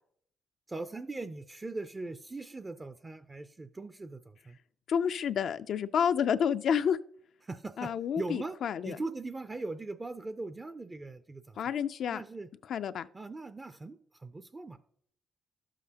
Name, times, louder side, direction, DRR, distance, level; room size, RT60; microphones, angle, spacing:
voice 1, 0.7-4.6 7.4-8.6 8.8-11.6 12.1-12.5 13.1-14.8, right 3 dB, 25° right, 10 dB, 0.4 m, -40 dB
voice 2, 4.9-7.0 7.8-9.0 11.6-12.2 12.7-13.1, left 8 dB, 65° left, 11 dB, 0.3 m, -29 dB
11.5 x 7.4 x 2.8 m, 0.66 s
cardioid pair, 90°, 0 cm